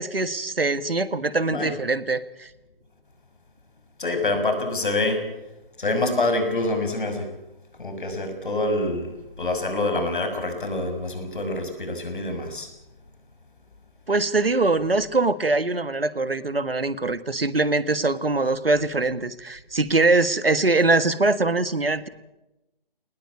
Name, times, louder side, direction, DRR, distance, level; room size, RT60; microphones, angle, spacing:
voice 1, 0.0-2.5 14.1-22.1, right 3 dB, 80° right, 14 dB, 1.7 m, -23 dB
voice 2, 4.0-5.2 5.8-7.3 7.8-12.7, left 2 dB, 60° left, 7 dB, 6.3 m, -26 dB
21.0 x 20.0 x 8.7 m, 0.96 s
figure-of-eight pair, 150°, 29 cm